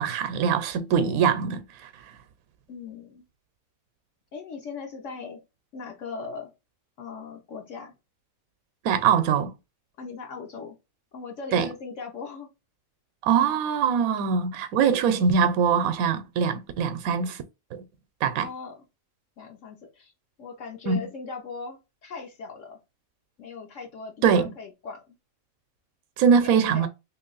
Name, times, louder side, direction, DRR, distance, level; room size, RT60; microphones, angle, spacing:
voice 1, 0.0-1.9 8.8-9.5 11.5-11.7 13.2-17.4 17.7-17.8 18.2-18.5 20.9-21.0 24.2-24.5 26.2-26.9, right 7 dB, 90° right, 1.0 m, -22 dB
voice 2, 2.7-3.3 4.3-5.4 5.7-6.5 7.0-7.9 10.0-10.8 11.1-12.5 18.4-18.8 19.4-20.1 20.4-22.8 23.4-25.2 26.3-26.9, left 5 dB, 65° left, 1.0 m, -39 dB
3.0 x 2.8 x 3.8 m
omnidirectional pair, 1.5 m